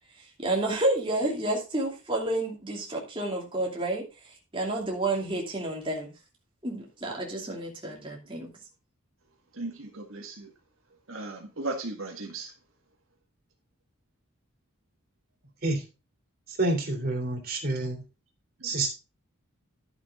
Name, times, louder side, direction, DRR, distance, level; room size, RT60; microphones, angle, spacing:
voice 1, 0.4-4.1 4.5-6.1 6.6-8.5, right 2 dB, 25° right, 2.6 m, -30 dB
voice 2, 9.6-10.5 11.1-12.5 18.6-18.8, right 2 dB, 70° right, 1.8 m, -36 dB
voice 3, 16.6-18.0 18.6-18.9, right 2 dB, 45° right, 3.3 m, -28 dB
11.5 x 7.2 x 3.7 m
head